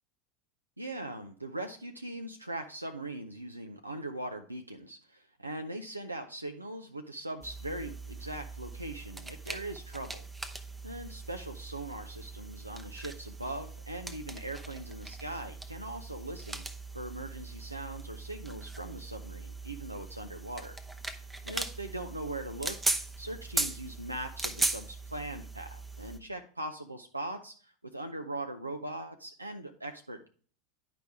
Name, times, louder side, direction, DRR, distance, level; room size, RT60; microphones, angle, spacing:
voice 1, 0.8-10.2 10.8-16.7 16.9-20.8 21.4-22.8 23.2-30.3, right 1 dB, 90° right, 5 dB, 0.5 m, -40 dB
sound 1, 7.4-26.2, right 2 dB, 10° right, 0.8 m, -39 dB
10.5 x 5.0 x 3.4 m, 0.42 s
figure-of-eight pair, 80°, 0 cm